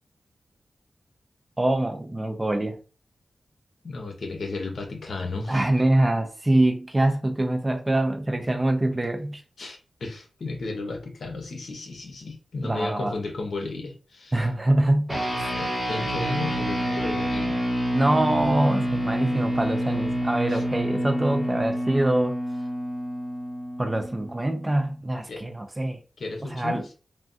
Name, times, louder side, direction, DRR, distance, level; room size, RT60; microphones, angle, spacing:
voice 1, 1.6-2.8 5.5-9.4 12.6-13.1 14.3-15.5 17.9-22.3 23.8-26.0 26.5-26.8, right 1 dB, 20° right, 0.4 m, -24 dB
voice 2, 3.8-5.7 9.6-14.4 15.6-17.6 20.5-20.6 25.3-25.4 26.2-26.8, left 3 dB, 75° left, 0.8 m, -34 dB
sound 1, 15.1-24.7, equal, ahead, 1.3 m, -28 dB
3.3 x 2.2 x 2.5 m
wide cardioid pair, 160°, 0 cm